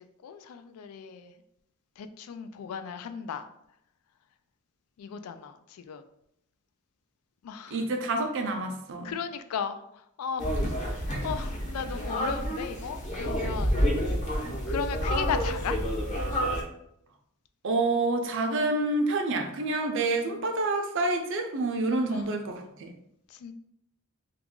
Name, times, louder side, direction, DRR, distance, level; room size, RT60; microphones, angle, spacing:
voice 1, 0.2-1.3 2.0-3.4 5.0-5.5 5.9-6.0 7.4-7.8 9.0-9.8 10.2-10.5 11.2-13.7 14.7-15.8 22.1-22.2 23.4-23.5, left 6 dB, 75° left, 10 dB, 0.3 m, -35 dB
voice 2, 7.7-9.1 17.6-22.9, right 2 dB, 55° right, 5 dB, 0.5 m, -28 dB
sound 1, 10.4-16.6, equal, 35° left, 0.7 m, -29 dB
2.9 x 2.4 x 3.6 m, 0.77 s
head